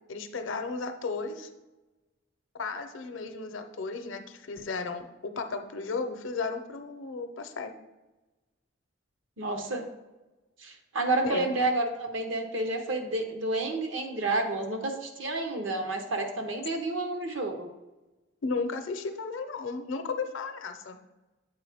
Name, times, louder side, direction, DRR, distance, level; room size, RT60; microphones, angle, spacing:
voice 1, 0.1-1.5 2.5-7.7 11.2-11.5 18.4-21.0, left 4 dB, 75° left, 7 dB, 0.6 m, -34 dB
voice 2, 9.4-9.9 10.6-17.7, right 2 dB, 70° right, 5 dB, 0.9 m, -30 dB
7.9 x 4.4 x 3.5 m, 1.1 s
head